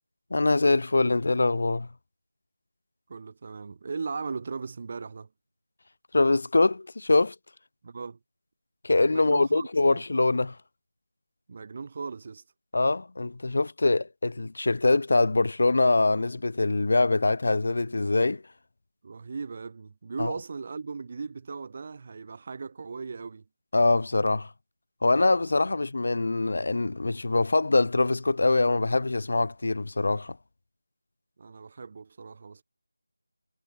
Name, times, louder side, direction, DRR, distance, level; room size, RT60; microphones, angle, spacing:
voice 1, 0.3-1.9 6.1-7.3 8.8-10.6 12.7-18.4 20.2-20.3 23.7-24.5 25.0-30.4, left 3 dB, 55° left, 2.8 m, -23 dB
voice 2, 3.1-5.3 7.8-8.2 9.1-10.0 11.5-12.4 19.0-23.4 25.5-25.6 31.4-32.6, right 4 dB, 30° right, 3.5 m, -38 dB
figure-of-eight pair, 170°, 0 cm